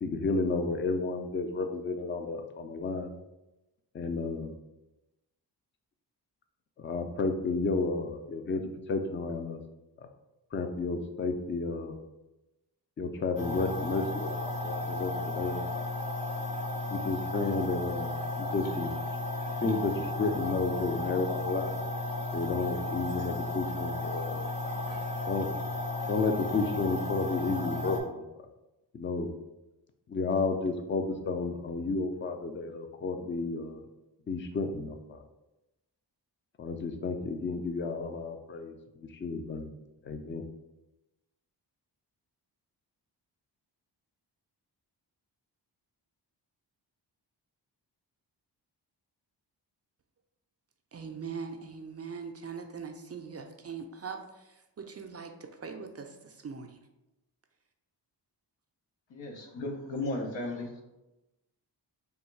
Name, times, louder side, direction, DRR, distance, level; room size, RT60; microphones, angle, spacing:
voice 1, 0.0-3.1 3.9-4.6 6.8-8.6 8.9-9.6 10.5-12.0 13.0-15.9 16.9-18.9 19.6-21.8 22.3-24.4 25.3-25.5 26.1-28.2 28.9-29.3 30.1-33.8 34.3-35.2 36.6-38.7 39.0-39.7 40.0-40.4, left 3 dB, 30° left, 6 dB, 0.4 m, -32 dB
sound 1, 13.4-28.0, left 2 dB, 50° left, 1.1 m, -34 dB
voice 2, 50.9-56.8, right 5 dB, 35° right, 5 dB, 0.4 m, -41 dB
voice 3, 59.1-60.8, left 2 dB, 80° left, 1 dB, 0.9 m, -35 dB
3.5 x 2.3 x 4.4 m, 0.98 s
cardioid pair, 70°, 43 cm